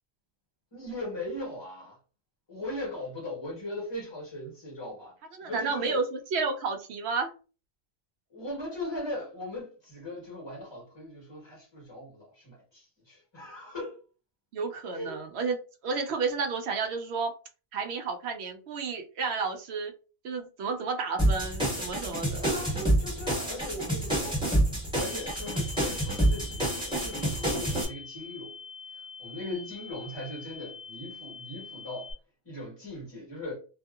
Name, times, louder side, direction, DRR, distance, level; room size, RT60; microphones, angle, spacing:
voice 1, 0.7-2.0 2.5-5.1 5.5-6.0 8.3-14.0 14.9-15.2 22.4-24.4 25.0-28.5 29.2-32.1 32.4-33.6, left 1 dB, 25° left, 1.2 m, -39 dB
voice 2, 5.3-7.3 14.5-15.6 15.8-17.3 17.7-19.9 20.2-22.5 29.4-29.7, right 4 dB, 85° right, 0.9 m, -31 dB
sound 1, 21.2-27.8, right 1 dB, 5° right, 1.3 m, -28 dB
sound 2, 25.0-32.1, left 5 dB, 45° left, 1.2 m, -45 dB
2.7 x 2.3 x 2.3 m
omnidirectional pair, 1.1 m